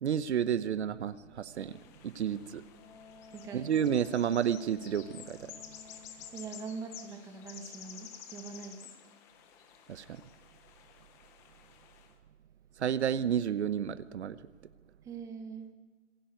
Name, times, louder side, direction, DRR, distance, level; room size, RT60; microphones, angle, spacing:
voice 1, 0.0-1.8 2.0-2.6 3.5-5.5 9.9-10.2 12.8-14.4, right 9 dB, 60° right, 15 dB, 0.9 m, -31 dB
sound 1, 1.6-12.1, left 8 dB, 5° left, 0.5 m, -52 dB
Wind instrument woodwind instrument, 2.8-8.3, left 7 dB, 30° left, 4.6 m, -55 dB
voice 2, 3.3-3.7 5.9-6.0 6.3-8.9 15.0-15.7, right 5 dB, 10° right, 7 dB, 1.1 m, -43 dB
26.0 x 11.0 x 9.2 m, 1.4 s
hypercardioid pair, 155°, 37 cm